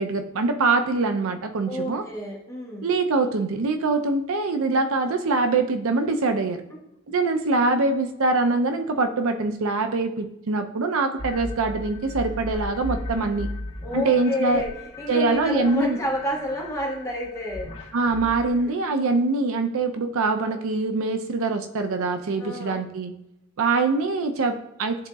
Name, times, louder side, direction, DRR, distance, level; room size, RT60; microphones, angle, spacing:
voice 1, 0.0-2.0 2.8-6.6 7.1-13.5 13.9-14.6 15.1-16.0 17.9-23.1 23.6-25.1, right 3 dB, 70° right, 7 dB, 0.5 m, -24 dB
voice 2, 1.7-2.9 13.8-17.7 18.5-18.7 22.4-22.8, left 1 dB, 15° left, -3 dB, 1.4 m, -30 dB
sound 1, 11.2-18.5, left 2 dB, 85° left, 1.4 m, -37 dB
10.5 x 3.9 x 2.3 m, 0.85 s
head